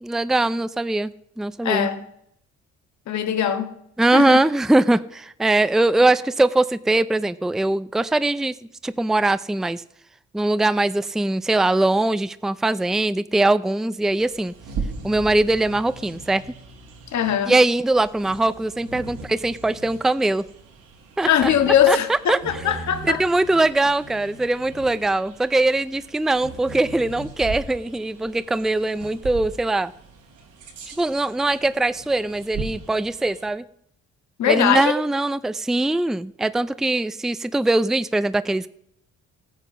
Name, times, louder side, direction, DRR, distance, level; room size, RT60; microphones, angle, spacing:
voice 1, 0.0-1.1 1.4-1.9 4.0-8.5 8.8-9.8 10.3-14.5 15.0-16.4 17.5-20.4 21.2-21.5 21.9-22.4 23.1-29.9 31.0-33.7 34.5-38.7, right 2 dB, ahead, 0.5 m, -21 dB
voice 2, 1.6-2.0 3.1-3.7 4.1-4.4 17.1-17.6 21.3-23.2 34.4-34.9, left 9 dB, 65° left, 1.8 m, -21 dB
Bird vocalization bird call bird song, 14.0-33.5, right 4 dB, 85° right, 3.7 m, -39 dB
15.0 x 9.2 x 5.6 m
cardioid pair, 90°, 30 cm